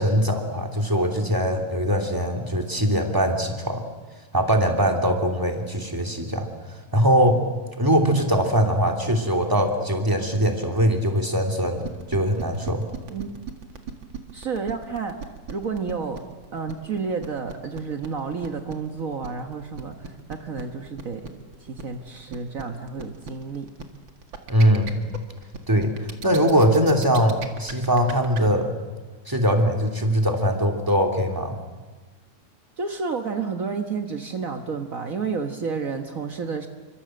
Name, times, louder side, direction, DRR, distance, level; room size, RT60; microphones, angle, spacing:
voice 1, 0.0-3.8 4.3-6.5 6.9-7.4 7.8-12.8 24.5-25.0 25.7-25.9 26.2-28.7 29.3-31.6, equal, 5° right, 3 dB, 2.5 m, -21 dB
sound 1, 11.8-28.4, right 5 dB, 45° right, 2.3 m, -37 dB
voice 2, 14.3-15.2 15.5-16.2 16.5-21.3 21.6-23.7 32.8-36.7, right 5 dB, 60° right, 5 dB, 0.8 m, -30 dB
28.5 x 25.0 x 7.7 m, 1.3 s
omnidirectional pair, 3.4 m